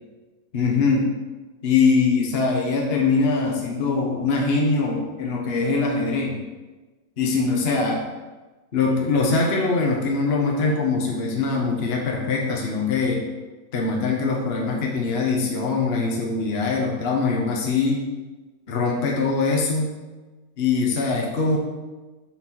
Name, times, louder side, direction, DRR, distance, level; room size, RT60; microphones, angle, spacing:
voice 1, 0.5-1.1 1.6-6.4 7.2-8.0 8.7-13.3 13.7-18.0 18.7-19.9 20.6-21.6, left 4 dB, 45° left, -1 dB, 1.3 m, -22 dB
7.8 x 6.0 x 4.6 m, 1.2 s
omnidirectional pair, 1.6 m